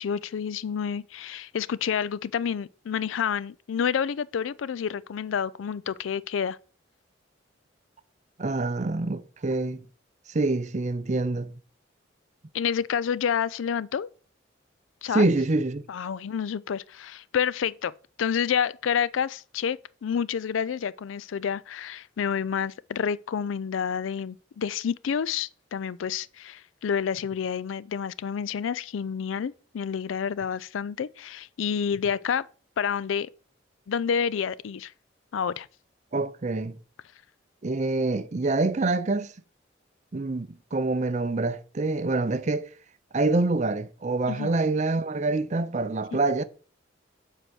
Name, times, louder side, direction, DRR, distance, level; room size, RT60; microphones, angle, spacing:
voice 1, 0.0-6.6 12.5-14.1 15.0-15.3 15.9-17.9 18.2-32.5 32.8-33.3 33.9-34.9 35.3-35.7 44.3-44.5 46.1-46.2, left 7 dB, 85° left, 0.4 m, -29 dB
voice 2, 8.4-9.8 10.3-11.5 15.1-15.8 36.1-36.8 37.6-39.3 40.1-42.7 43.1-46.4, right 2 dB, 40° right, 0.5 m, -26 dB
7.6 x 4.7 x 6.2 m
head